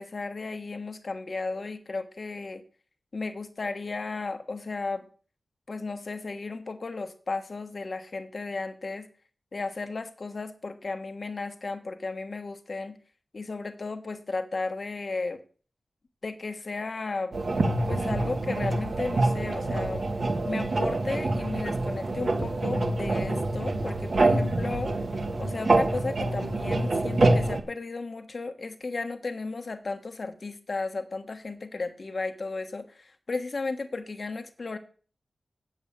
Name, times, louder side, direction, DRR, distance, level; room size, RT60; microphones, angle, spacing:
voice 1, 0.0-2.6 3.1-5.1 5.7-9.1 9.5-13.0 13.3-15.4 16.2-17.3 17.9-20.1 20.4-24.9 25.4-34.8, left 3 dB, 45° left, 7 dB, 1.3 m, -34 dB
sound 1, 17.3-27.6, right 2 dB, 50° right, 1.3 m, -26 dB
7.6 x 7.2 x 8.5 m, 0.41 s
wide cardioid pair, 130°, 0 cm